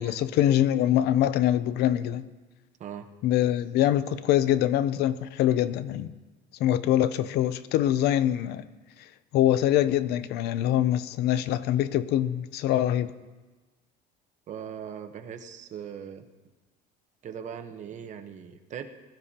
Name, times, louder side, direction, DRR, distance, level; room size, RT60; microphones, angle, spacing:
voice 1, 0.0-2.2 3.2-6.1 6.6-8.7 9.3-13.1, left 12 dB, 70° left, 0.6 m, -24 dB
voice 2, 2.8-3.1 14.5-16.2 17.2-18.9, right 8 dB, 45° right, 1.0 m, -39 dB
20.5 x 13.5 x 2.9 m
cardioid pair, 140°, 17 cm